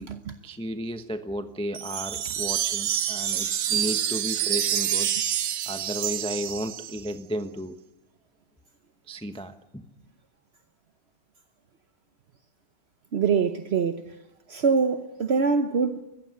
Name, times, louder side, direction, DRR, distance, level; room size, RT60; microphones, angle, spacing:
voice 1, 0.4-5.1 5.7-7.8 9.1-9.8, equal, 5° left, 0.5 m, -34 dB
sound 1, 1.7-7.1, right 10 dB, 80° right, 1.8 m, -27 dB
voice 2, 13.1-14.2 14.5-16.0, right 5 dB, 50° right, 0.8 m, -24 dB
21.5 x 15.0 x 9.7 m
omnidirectional pair, 2.1 m